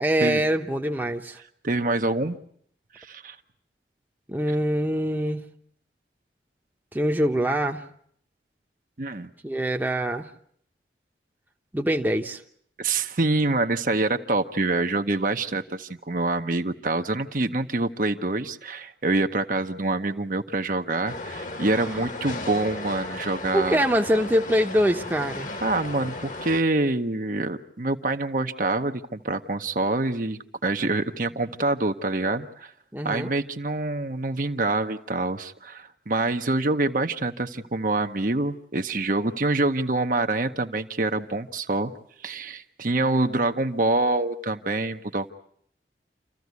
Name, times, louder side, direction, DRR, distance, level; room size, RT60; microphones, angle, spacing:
voice 1, 0.0-1.4 4.3-5.4 6.9-7.8 9.4-10.3 11.7-12.4 23.5-25.6 32.9-33.3, equal, 10° right, 3 dB, 0.9 m, -24 dB
voice 2, 1.6-2.4 2.9-3.4 4.5-4.6 9.0-9.3 12.8-23.8 25.6-32.7 33.0-41.9 42.2-45.3, right 2 dB, 50° right, 7 dB, 0.9 m, -26 dB
sound 1, 21.1-26.6, left 2 dB, 45° left, 1.4 m, -35 dB
28.0 x 14.5 x 9.5 m, 0.65 s
head